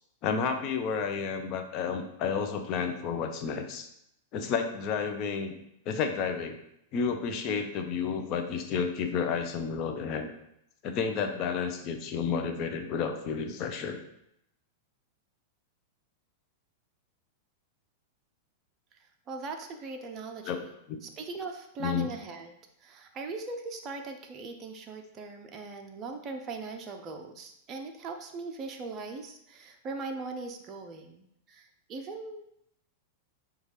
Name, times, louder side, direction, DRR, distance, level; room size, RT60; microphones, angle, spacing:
voice 1, 0.2-3.9 4.3-5.6 5.9-6.6 6.9-10.3 10.8-14.0 20.5-20.6 20.9-21.0 21.8-22.1, left 6 dB, 40° left, 6 dB, 0.5 m, -31 dB
voice 2, 19.3-20.7 21.0-32.5, right 3 dB, 30° right, 4 dB, 0.4 m, -40 dB
6.3 x 2.3 x 3.1 m, 0.77 s
figure-of-eight pair, 95°, 0 cm